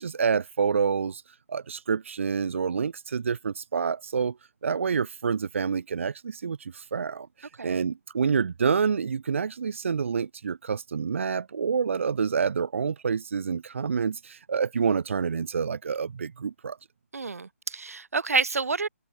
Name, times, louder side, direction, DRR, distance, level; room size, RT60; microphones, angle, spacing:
voice 1, 0.0-4.4 4.6-16.8, right 6 dB, 60° right, 1.0 m, -28 dB
voice 2, 17.1-18.9, right 4 dB, 85° right, 3.8 m, -28 dB
hypercardioid pair, 170°, 8 cm